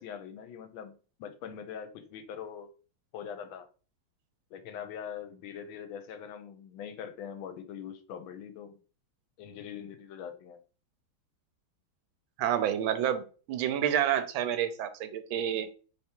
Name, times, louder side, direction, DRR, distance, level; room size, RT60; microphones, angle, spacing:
voice 1, 0.0-2.7 3.1-3.7 4.5-8.7 9.4-10.6, left 8 dB, 80° left, 1.4 m, -42 dB
voice 2, 12.4-15.7, right 10 dB, 80° right, 1.4 m, -29 dB
3.4 x 3.4 x 4.4 m
omnidirectional pair, 2.2 m